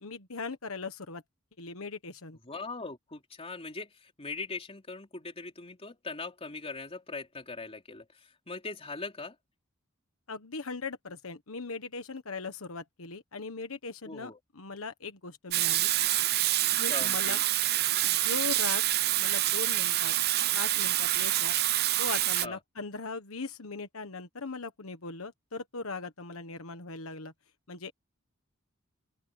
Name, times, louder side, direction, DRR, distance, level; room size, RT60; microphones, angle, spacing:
voice 1, 0.0-1.2 1.6-2.4 10.3-15.9 16.8-17.4 18.0-18.8 19.2-20.1 20.5-21.5 22.0-27.3 27.7-27.9, left 4 dB, 75° left, 1.3 m, -39 dB
voice 2, 2.4-8.1 8.5-9.4 14.0-14.4 16.9-17.5 22.4-22.6, left 3 dB, 30° left, 3.5 m, -40 dB
Water tap faucet / Sink (filling or washing), 15.5-22.5, right 14 dB, 50° right, 0.6 m, -27 dB
open air
head